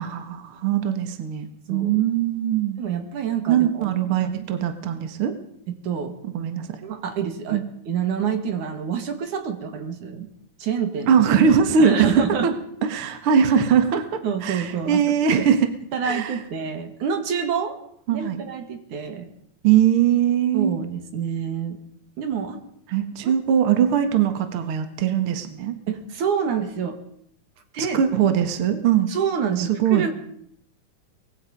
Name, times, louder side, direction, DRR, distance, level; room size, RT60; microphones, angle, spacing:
voice 1, 0.0-2.8 3.5-5.3 6.3-6.8 7.5-7.6 11.1-12.5 12.9-15.7 16.0-16.3 18.1-18.4 19.6-20.8 22.9-25.8 27.8-29.1 29.6-30.1, right 8 dB, 50° right, 7 dB, 2.2 m, -21 dB
voice 2, 1.7-2.0 2.8-3.9 4.2-4.3 5.7-6.2 6.8-10.3 10.6-11.2 11.8-12.5 14.2-15.0 15.3-15.5 15.9-17.8 18.1-19.3 20.5-21.8 22.2-22.6 23.2-23.3 25.9-27.0 27.7-28.0 29.1-30.1, right 7 dB, 75° right, 6 dB, 3.6 m, -27 dB
24.0 x 21.0 x 5.4 m, 0.68 s
omnidirectional pair, 3.6 m